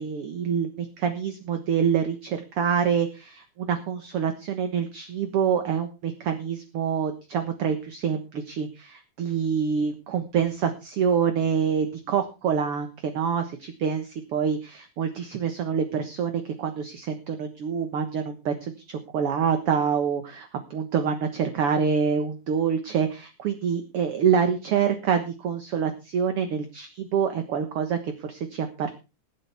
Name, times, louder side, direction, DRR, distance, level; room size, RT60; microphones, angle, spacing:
voice 1, 0.0-29.0, right 7 dB, 55° right, 7 dB, 2.0 m, -26 dB
21.5 x 8.8 x 3.5 m, 0.30 s
omnidirectional pair, 3.5 m